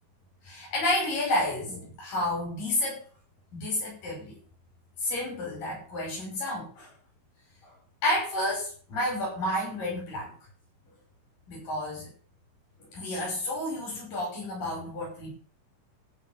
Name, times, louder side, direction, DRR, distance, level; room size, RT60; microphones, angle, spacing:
voice 1, 0.4-3.0 3.5-4.4 5.0-6.9 7.6-7.7 8.0-10.3 11.5-12.1 12.8-15.3, left 1 dB, 75° left, -3 dB, 7.0 m, -30 dB
13.5 x 6.3 x 7.1 m, 0.41 s
omnidirectional pair, 3.9 m